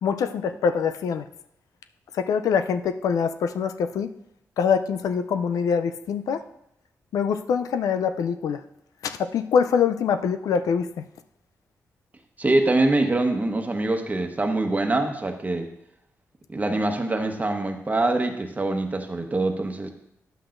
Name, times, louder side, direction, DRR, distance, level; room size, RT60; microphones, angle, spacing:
voice 1, 0.0-1.3 2.1-4.1 4.6-6.4 7.1-8.6 9.0-11.0, left 6 dB, 85° left, 10 dB, 0.4 m, -24 dB
voice 2, 12.4-15.7 16.5-19.9, right 2 dB, 30° right, 4 dB, 1.1 m, -24 dB
10.0 x 7.8 x 2.5 m, 0.78 s
cardioid pair, 65°, 6 cm